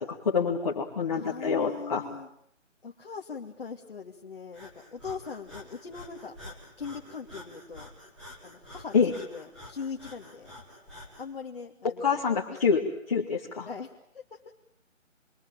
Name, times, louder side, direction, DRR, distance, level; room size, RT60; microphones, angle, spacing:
voice 1, 0.1-2.0 8.9-9.1 11.8-13.7, left 5 dB, 30° left, -2 dB, 2.4 m, -26 dB
voice 2, 1.1-2.3 2.8-7.9 8.4-8.9 9.3-10.6 11.2-12.6 13.6-14.5, left 5 dB, 45° left, -1 dB, 2.6 m, -41 dB
Breathing, 4.5-11.3, left 1 dB, ahead, 1.3 m, -48 dB
27.5 x 22.5 x 8.9 m, 0.73 s
figure-of-eight pair, 170°, 39 cm